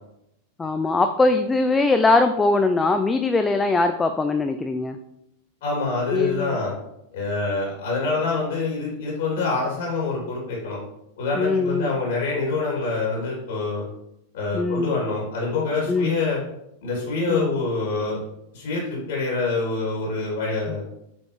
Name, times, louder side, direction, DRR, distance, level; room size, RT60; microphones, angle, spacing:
voice 1, 0.6-5.0 6.1-6.6 11.4-11.9 14.5-14.9 15.9-16.1 17.3-17.5 20.7-20.8, left 3 dB, 15° left, 8 dB, 0.4 m, -21 dB
voice 2, 5.6-6.7 7.1-10.8 11.2-13.8 14.3-16.4 16.8-18.2 18.5-20.8, left 3 dB, 55° left, -3 dB, 2.8 m, -26 dB
8.0 x 5.2 x 3.2 m, 0.81 s
figure-of-eight pair, 90°, 0 cm